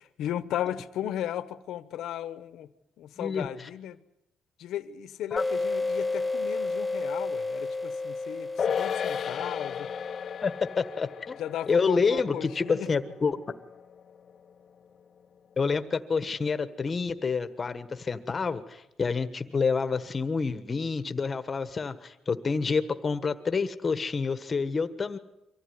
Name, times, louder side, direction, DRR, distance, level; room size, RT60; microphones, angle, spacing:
voice 1, 0.2-2.7 3.0-4.0 4.6-9.9 11.4-12.9, left 11 dB, 75° left, 13 dB, 1.1 m, -35 dB
voice 2, 3.2-3.7 5.3-5.4 10.4-11.4 11.7-13.4 15.6-25.2, left 5 dB, 30° left, 11 dB, 1.4 m, -28 dB
sound 1, 5.4-10.7, left 3 dB, 5° left, 0.8 m, -32 dB
sound 2, 8.6-15.2 15.5-15.6, left 7 dB, 45° left, 0.8 m, -35 dB
24.5 x 15.0 x 9.5 m, 0.88 s
cardioid pair, 125°, 0 cm